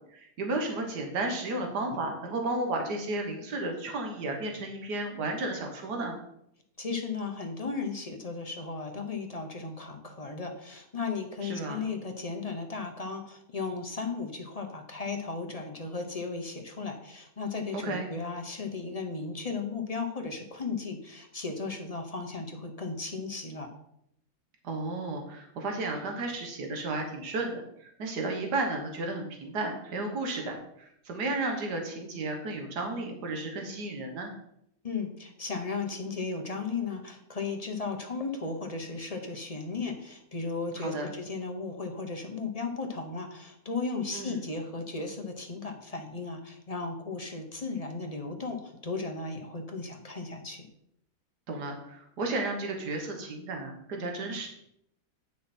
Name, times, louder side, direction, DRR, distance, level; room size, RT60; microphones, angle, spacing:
voice 1, 0.1-6.2 11.4-11.8 17.7-18.1 24.6-34.3 40.8-41.1 44.1-44.4 51.5-54.5, right 2 dB, 90° right, 3 dB, 1.8 m, -33 dB
voice 2, 6.8-23.7 34.8-50.7, left 4 dB, 30° left, 3 dB, 0.9 m, -35 dB
9.1 x 6.1 x 4.3 m, 0.75 s
omnidirectional pair, 1.7 m